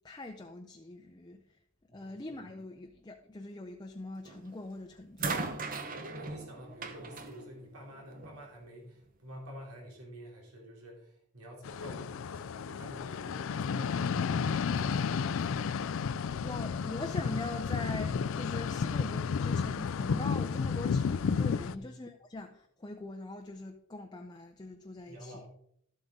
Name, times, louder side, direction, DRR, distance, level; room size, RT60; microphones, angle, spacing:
voice 1, 0.0-1.4 1.9-5.4 16.4-25.4, left 2 dB, 20° left, 0.6 m, -42 dB
voice 2, 1.9-2.2 5.9-14.4 14.8-15.7 21.7-22.0 25.1-25.5, equal, 85° right, 3.1 m, -49 dB
sound 1, 4.3-4.6 5.2-8.5 9.5-9.6, right 3 dB, 40° right, 1.0 m, -39 dB
sound 2, 11.6-21.7, left 6 dB, 60° left, 0.4 m, -32 dB
12.5 x 7.9 x 3.7 m
head